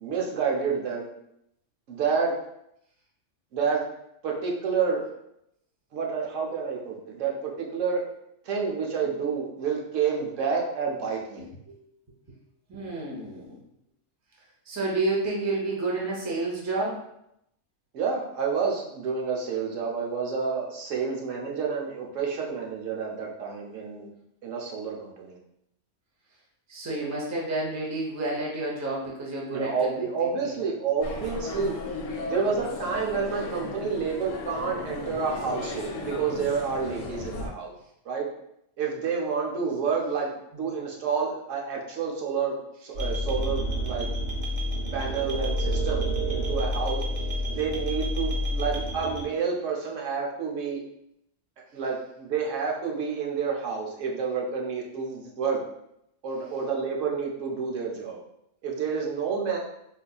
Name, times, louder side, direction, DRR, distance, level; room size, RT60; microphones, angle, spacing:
voice 1, 0.0-1.1 1.9-2.3 3.5-3.8 4.2-5.1 5.9-8.0 8.5-11.4 17.9-24.1 24.4-25.4 27.0-27.1 29.5-31.7 32.3-37.7 38.1-38.3 38.8-40.3 40.6-44.1 44.9-47.0 47.5-50.8 51.7-55.6 56.2-58.2 58.6-59.6, right 5 dB, 80° right, -1 dB, 1.0 m, -29 dB
voice 2, 12.7-13.6 14.7-17.0 26.7-30.3 40.5-40.6, right 2 dB, 20° right, -3 dB, 0.5 m, -30 dB
sound 1, 31.0-37.5, left 3 dB, 85° left, 1.0 m, -36 dB
sound 2, 42.9-49.2, equal, 55° right, 0.7 m, -29 dB
3.9 x 2.7 x 2.3 m, 0.79 s
omnidirectional pair, 1.3 m